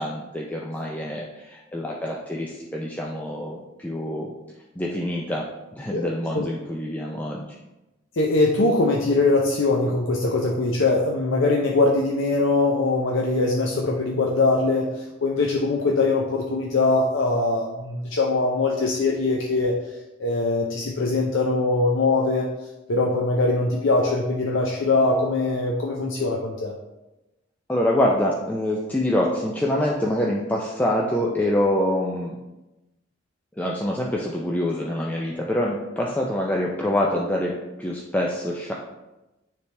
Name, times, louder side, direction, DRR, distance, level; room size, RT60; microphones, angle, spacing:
voice 1, 0.0-4.3 4.8-5.5 5.7-7.6 27.7-32.3 33.6-38.7, left 1 dB, 10° left, -2 dB, 0.5 m, -25 dB
voice 2, 8.1-19.7 20.2-22.5 22.9-26.7, left 3 dB, 70° left, -1 dB, 0.6 m, -22 dB
9.4 x 3.4 x 3.3 m, 1.0 s
head